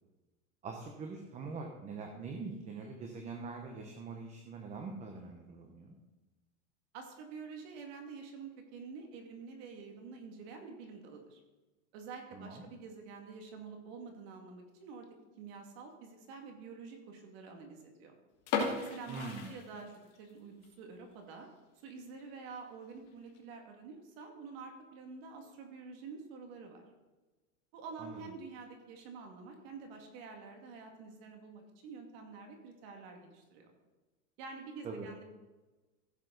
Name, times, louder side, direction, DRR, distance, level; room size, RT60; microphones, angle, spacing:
voice 1, 0.6-6.0 12.3-12.6 19.1-19.5 28.0-28.2 34.8-35.1, right 4 dB, 15° right, 3 dB, 0.9 m, -43 dB
voice 2, 6.9-11.4 11.9-15.1 15.4-18.2 18.8-21.5 21.8-26.8 27.7-33.7 34.4-35.2, right 5 dB, 45° right, 3 dB, 2.3 m, -48 dB
sound 1, 18.4-20.3 20.6-20.7 21.3-21.5 21.9-22.0 22.2-22.3 23.1-23.4, left 5 dB, 40° left, 2.5 m, -36 dB
15.5 x 7.3 x 4.0 m, 1.2 s
supercardioid pair, 150°, 40 cm